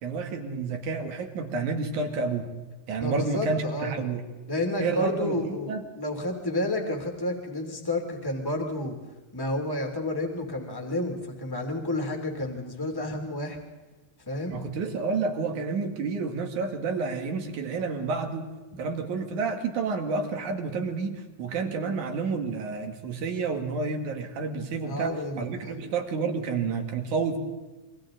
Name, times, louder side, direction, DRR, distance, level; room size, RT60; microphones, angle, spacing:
voice 1, 0.0-2.5 2.9-4.2 4.8-5.8 14.5-18.5 18.8-27.4, right 4 dB, 60° right, 5 dB, 3.0 m, -30 dB
voice 2, 3.0-3.9 4.5-9.0 9.3-13.6 14.3-14.7 24.8-25.8, left 1 dB, 5° left, 2 dB, 2.4 m, -30 dB
28.5 x 23.5 x 3.9 m, 1.2 s
omnidirectional pair, 4.2 m